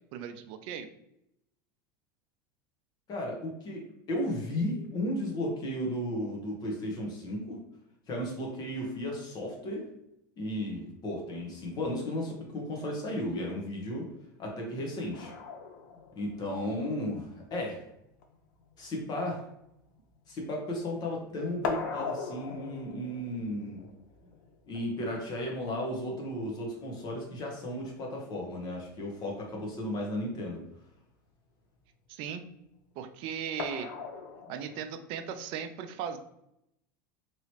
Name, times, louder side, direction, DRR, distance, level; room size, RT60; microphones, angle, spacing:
voice 1, 0.1-0.9 32.1-32.4 33.0-33.9 34.5-36.2, right 8 dB, 55° right, 8 dB, 0.4 m, -37 dB
voice 2, 3.1-7.6 8.1-9.9 10.4-14.1 14.4-15.3 16.1-17.8 18.8-19.4 20.3-23.9 24.7-30.6, left 1 dB, 40° left, 0 dB, 1.0 m, -34 dB
sound 1, 15.1-20.9 21.1-28.1 29.5-29.6 30.0-30.1 33.6-34.8, left 5 dB, 80° left, 0.6 m, -41 dB
3.1 x 2.9 x 2.8 m, 0.79 s
hypercardioid pair, 100°, 11 cm